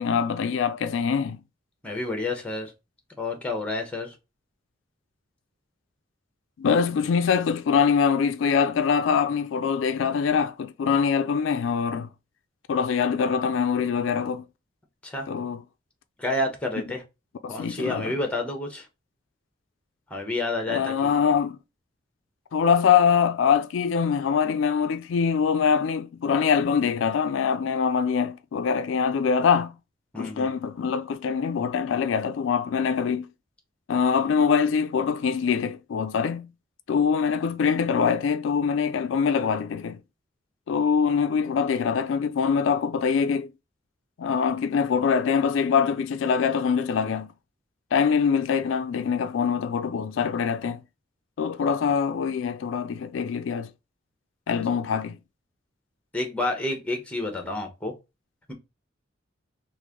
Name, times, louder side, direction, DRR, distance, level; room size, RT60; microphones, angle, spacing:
voice 1, 0.0-1.4 6.6-12.1 12.7-14.4 15.3-15.6 17.4-18.1 20.7-21.6 22.5-29.7 30.2-33.3 33.9-36.5 36.9-40.0 40.7-43.5 44.2-47.3 47.9-50.8 51.4-53.7 54.5-55.2, left 6 dB, 90° left, 0.4 m, -24 dB
voice 2, 1.8-2.7 3.2-4.1 15.0-15.3 16.2-17.0 17.5-18.9 20.1-21.1 30.1-30.6 56.1-57.9, left 2 dB, 5° left, 1.0 m, -29 dB
3.2 x 2.5 x 3.6 m
head